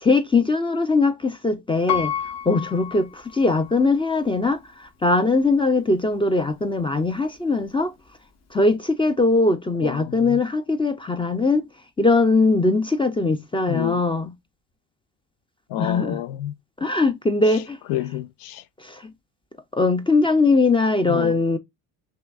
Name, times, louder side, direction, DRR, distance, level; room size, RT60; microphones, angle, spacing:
voice 1, 0.0-2.1 2.5-7.9 8.5-11.6 12.0-14.3 15.8-16.2 16.8-17.8 18.8-19.1 19.7-21.6, left 3 dB, 15° left, 0.4 m, -21 dB
Piano, 1.9-3.9 4.4-4.5, left 10 dB, 40° left, 0.9 m, -30 dB
voice 2, 9.8-10.4 13.7-14.0 15.7-16.5 17.9-18.6 21.1-21.3, left 12 dB, 80° left, 0.5 m, -29 dB
5.6 x 2.6 x 2.3 m
cardioid pair, 100°, 40 cm